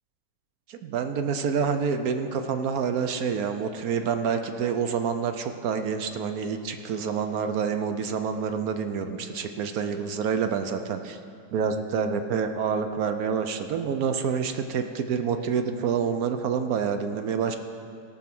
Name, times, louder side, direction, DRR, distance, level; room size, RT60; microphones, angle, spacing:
voice 1, 0.7-11.2 11.5-17.6, right 6 dB, 65° right, 7 dB, 0.9 m, -27 dB
17.0 x 6.1 x 6.0 m, 2.3 s
omnidirectional pair, 2.0 m